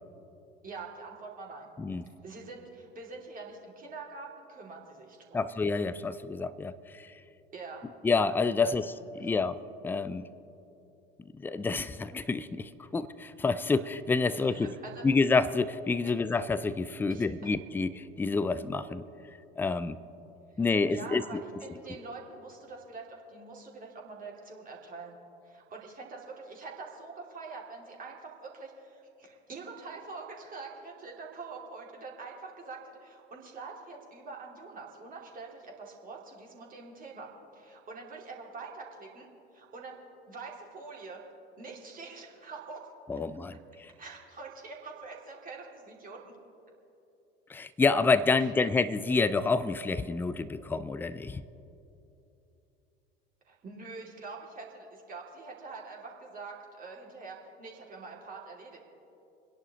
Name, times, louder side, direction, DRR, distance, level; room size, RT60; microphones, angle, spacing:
voice 1, 0.6-1.7 2.2-5.5 7.5-7.9 8.6-8.9 9.2-9.3 14.3-15.0 17.1-17.5 20.5-25.2 25.4-39.3 39.5-39.9 40.3-41.2 41.6-42.8 44.0-46.3 48.4-48.5 53.5-58.8, right 4 dB, 30° right, -1 dB, 2.7 m, -45 dB
voice 2, 5.3-7.0 8.0-8.9 9.2-9.5 9.8-10.2 11.4-14.8 15.0-19.0 19.6-20.0 20.6-21.4 43.1-43.9 47.5-51.4, left 4 dB, 5° left, 15 dB, 0.4 m, -28 dB
30.0 x 10.5 x 3.1 m, 2.9 s
figure-of-eight pair, 70°, 29 cm